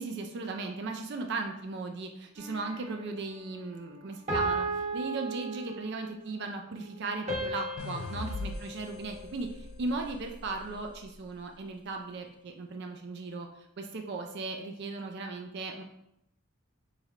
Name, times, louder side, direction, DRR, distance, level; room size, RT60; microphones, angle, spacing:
voice 1, 0.0-15.8, right 3 dB, 50° right, 4 dB, 0.4 m, -37 dB
sound 1, 2.4-3.1 4.3-6.1 7.3-9.7, right 2 dB, 30° right, 0.9 m, -35 dB
sound 2, 7.8-11.0, left 2 dB, 70° left, 0.3 m, -41 dB
4.1 x 3.2 x 2.4 m, 0.81 s
head